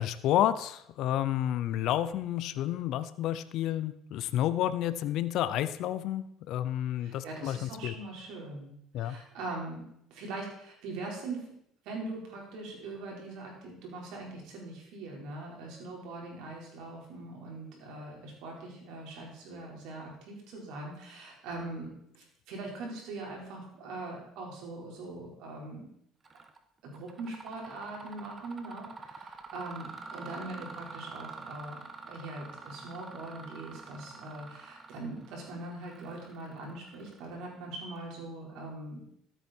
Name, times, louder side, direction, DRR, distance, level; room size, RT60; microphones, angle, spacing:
voice 1, 0.0-7.9 8.9-9.2, left 12 dB, 65° left, 13 dB, 0.7 m, -30 dB
voice 2, 7.0-11.5 11.8-25.9 26.8-39.1, right 2 dB, 70° right, -1 dB, 4.9 m, -42 dB
Mechanisms, 26.2-26.6 26.9-37.5, right 4 dB, 30° right, 1.4 m, -47 dB
13.5 x 9.0 x 4.6 m, 0.73 s
supercardioid pair, 90°, 0 cm